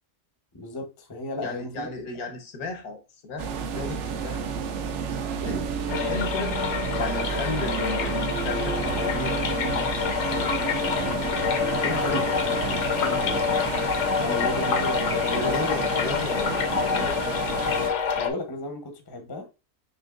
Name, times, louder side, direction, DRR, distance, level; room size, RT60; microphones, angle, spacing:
voice 1, 0.5-1.9 11.9-12.2 12.9-13.4 14.2-15.8 18.1-19.5, left 1 dB, 20° left, 0.7 m, -34 dB
voice 2, 1.4-4.4 5.4-6.6 7.0-10.5 11.6-12.3 15.0-17.6, left 3 dB, 80° left, 1.4 m, -35 dB
sound 1, 3.4-17.9, right 6 dB, 65° right, 0.8 m, -31 dB
sound 2, 5.9-18.3, left 6 dB, 60° left, 0.9 m, -27 dB
6.2 x 2.7 x 2.4 m
omnidirectional pair, 1.6 m